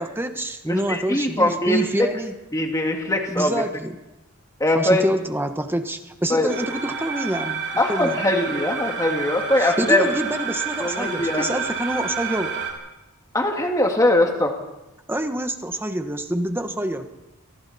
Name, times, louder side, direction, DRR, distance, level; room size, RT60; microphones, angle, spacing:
voice 1, 0.0-2.3 3.3-3.9 4.7-7.6 7.9-8.2 9.6-12.5 15.1-17.1, right 1 dB, 10° right, 7 dB, 1.3 m, -26 dB
voice 2, 0.7-2.1 2.5-3.6 4.6-5.0 6.3-6.5 7.8-10.1 10.8-11.5 13.3-14.5, left 1 dB, 15° left, 2 dB, 2.2 m, -21 dB
sound 1, 6.5-12.7, right 5 dB, 55° right, 6.6 m, -29 dB
29.5 x 24.0 x 4.3 m, 0.95 s
head